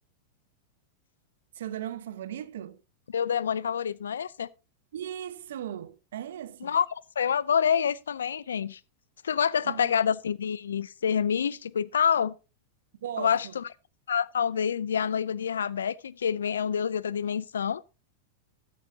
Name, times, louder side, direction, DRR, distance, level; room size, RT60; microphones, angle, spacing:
voice 1, 1.6-2.8 4.9-6.7 9.6-9.9 13.0-13.5, right 10 dB, 75° right, 1.1 m, -37 dB
voice 2, 3.1-4.5 6.6-6.9 7.2-8.8 9.2-12.3 13.2-13.7 14.1-17.8, left 7 dB, 85° left, 0.5 m, -27 dB
13.5 x 9.0 x 2.8 m
hypercardioid pair, 105°, 0 cm